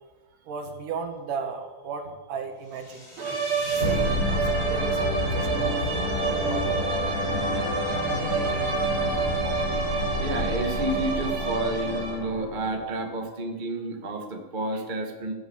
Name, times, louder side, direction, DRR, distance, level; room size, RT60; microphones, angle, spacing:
voice 1, 0.4-3.1 3.8-6.8 7.8-7.9 8.5-8.9 9.3-9.8, right 5 dB, 70° right, 5 dB, 3.2 m, -36 dB
sound 1, 2.9-13.1, left 1 dB, 80° left, 6.3 m, -29 dB
sound 2, 3.2-12.4, right 6 dB, 85° right, 4.7 m, -29 dB
voice 2, 9.9-15.3, right 1 dB, 35° right, 2 dB, 0.7 m, -30 dB
15.5 x 10.5 x 7.2 m, 1.3 s
omnidirectional pair, 4.0 m